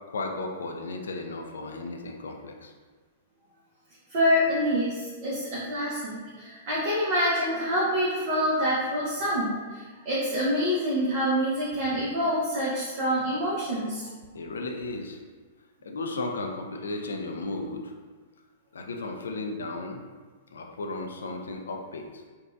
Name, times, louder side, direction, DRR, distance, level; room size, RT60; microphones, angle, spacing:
voice 1, 0.1-2.7 14.3-15.2 15.8-17.9 18.7-20.0 20.5-22.2, left 2 dB, 75° left, 3 dB, 0.4 m, -34 dB
voice 2, 4.1-14.1, equal, 50° right, -8 dB, 0.8 m, -26 dB
3.9 x 2.3 x 2.4 m, 1.4 s
figure-of-eight pair, 110°, 0 cm